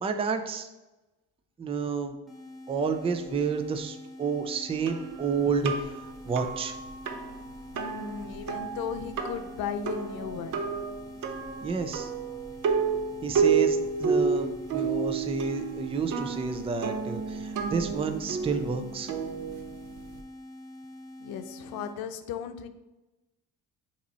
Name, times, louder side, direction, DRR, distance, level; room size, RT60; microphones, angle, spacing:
voice 1, 0.0-0.7 1.6-2.2 2.7-6.7 11.6-12.1 13.2-19.1, right 5 dB, 15° right, 7 dB, 0.4 m, -30 dB
sound 1, 2.3-22.0, left 1 dB, ahead, 1.0 m, -45 dB
sound 2, 4.9-20.2, right 5 dB, 60° right, 0.8 m, -31 dB
voice 2, 7.7-10.6 21.2-22.7, left 7 dB, 80° left, 9 dB, 0.7 m, -36 dB
8.6 x 3.0 x 4.1 m, 1.0 s
cardioid pair, 145°, 35 cm